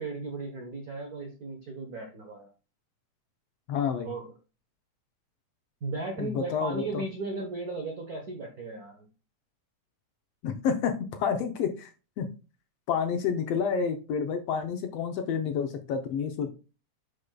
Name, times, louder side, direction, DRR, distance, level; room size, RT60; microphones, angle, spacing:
voice 1, 0.0-2.5 4.0-4.3 5.8-9.1, right 3 dB, 85° right, 3 dB, 0.8 m, -36 dB
voice 2, 3.7-4.1 6.2-7.0 10.4-11.9 12.2-12.3 12.9-16.5, left 6 dB, 70° left, 6 dB, 1.6 m, -29 dB
9.8 x 5.4 x 2.2 m, 0.32 s
omnidirectional pair, 3.4 m